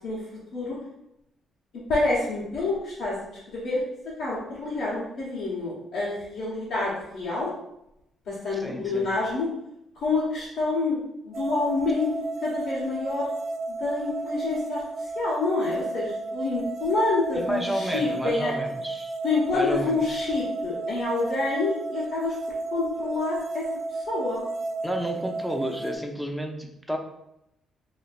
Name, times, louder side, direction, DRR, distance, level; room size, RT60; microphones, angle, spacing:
voice 1, 1.9-3.2 3.5-3.8 4.2-7.5 8.3-9.5 9.9-11.0 11.3-12.1 12.4-13.3 13.7-14.8 15.1-18.5 19.2-22.3 22.7-23.6 23.9-24.4, left 3 dB, 85° left, -9 dB, 0.9 m, -27 dB
voice 2, 8.5-9.1 17.3-19.2 19.5-20.3 24.8-27.0, equal, ahead, 2 dB, 0.5 m, -31 dB
sound 1, 11.3-26.0, right 3 dB, 50° right, 0.5 m, -33 dB
4.2 x 2.4 x 2.4 m, 0.83 s
cardioid pair, 90°, 0 cm